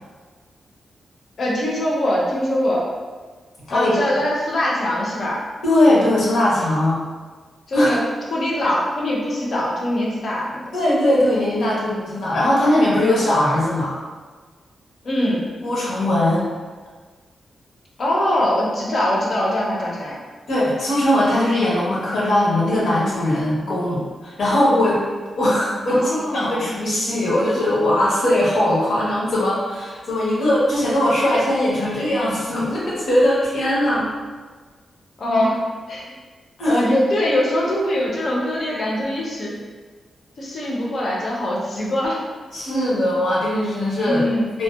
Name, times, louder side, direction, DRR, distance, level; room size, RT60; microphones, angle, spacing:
voice 1, 1.4-2.9 3.7-5.4 7.7-8.0 8.3-10.7 15.0-15.4 18.0-20.2 25.9-26.6 35.2-35.6 35.9-36.1 36.6-39.5 40.4-42.2 44.0-44.5, left 1 dB, 50° left, -4 dB, 0.5 m, -22 dB
voice 2, 5.6-7.0 7.7-8.0 10.7-13.9 15.6-16.5 20.5-25.0 25.4-34.1 36.6-36.8 42.5-44.2 44.5-44.6, left 1 dB, 80° left, -7 dB, 0.9 m, -20 dB
2.6 x 2.0 x 2.3 m, 1.4 s
wide cardioid pair, 165°, 0 cm